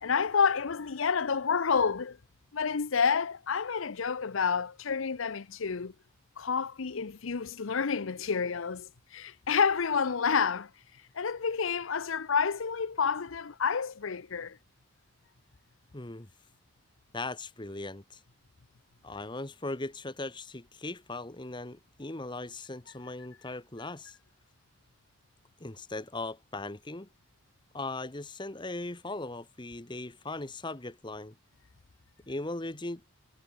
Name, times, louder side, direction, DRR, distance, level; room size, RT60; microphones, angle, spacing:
voice 1, 0.0-2.2 2.5-5.9 6.4-10.7 11.1-14.6, left 6 dB, 75° left, 0.7 m, -29 dB
voice 2, 15.9-16.3 17.1-18.2 19.0-24.1 25.6-27.1 27.7-31.3 32.3-33.0, left 2 dB, 25° left, 1.2 m, -38 dB
head